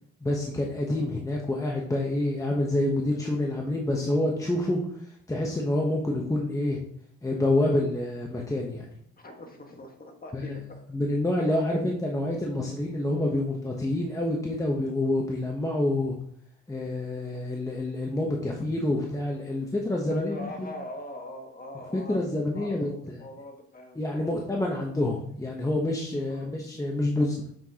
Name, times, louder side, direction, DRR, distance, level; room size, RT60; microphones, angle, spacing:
voice 1, 0.2-4.8 5.3-6.8 7.2-8.9 10.3-10.6 10.9-16.2 16.7-20.7 21.9-23.2 23.9-27.4, left 1 dB, 10° left, -1 dB, 0.9 m, -27 dB
voice 2, 9.2-10.8 20.1-22.2 22.5-24.3 26.3-26.5, left 1 dB, 30° left, 3 dB, 1.6 m, -42 dB
6.7 x 6.2 x 2.9 m, 0.68 s
cardioid pair, 90°, 30 cm